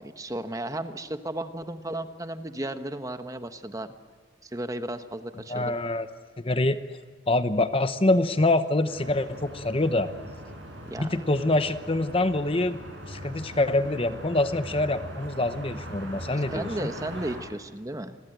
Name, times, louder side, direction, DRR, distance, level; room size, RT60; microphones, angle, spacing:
voice 1, 0.0-3.9 4.4-5.8 10.9-11.1 16.5-18.2, right 1 dB, 20° right, 9 dB, 1.1 m, -34 dB
voice 2, 5.5-6.1 6.4-6.8 7.3-10.1 11.0-12.8 13.1-16.9, left 2 dB, 30° left, 11 dB, 0.9 m, -25 dB
sound 1, 8.9-17.4, equal, 85° right, 7.3 m, -41 dB
28.0 x 21.5 x 9.0 m, 1.5 s
head